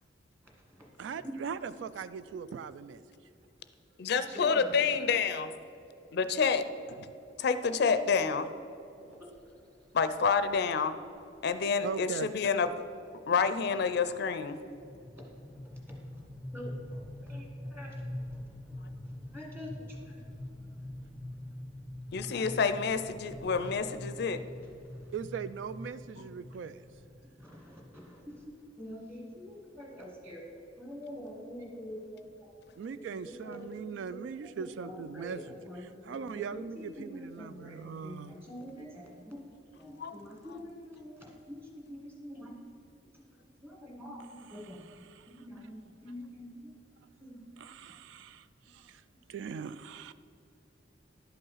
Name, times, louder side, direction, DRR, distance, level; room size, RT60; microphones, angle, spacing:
voice 1, 0.4-1.3 4.3-4.7 9.2-9.5 15.2-15.3 15.6-16.0 16.5-18.1 19.3-20.2 24.5-25.1 26.2-26.3 26.5-26.8 27.4-32.6 33.0-34.2 34.6-39.4 39.7-42.6 43.1-44.9 45.3-46.7 47.2-47.5, equal, 15° right, -1 dB, 1.8 m, -46 dB
voice 2, 1.0-3.0 5.9-6.0 11.8-12.3 25.1-26.8 32.8-35.4 36.1-38.4 47.6-49.0 49.3-50.1, right 6 dB, 75° right, 14 dB, 0.3 m, -40 dB
voice 3, 4.0-5.5 6.1-6.6 7.4-8.5 9.9-11.0 11.4-12.8 13.3-14.6 22.1-24.4 40.0-40.2, left 5 dB, 60° left, 11 dB, 0.4 m, -28 dB
sound 1, 9.4-9.6 10.5-10.6 11.0-11.1 11.4-11.7 12.1-28.5, left 1 dB, 5° left, 0.5 m, -44 dB
11.0 x 5.4 x 5.6 m, 2.7 s
head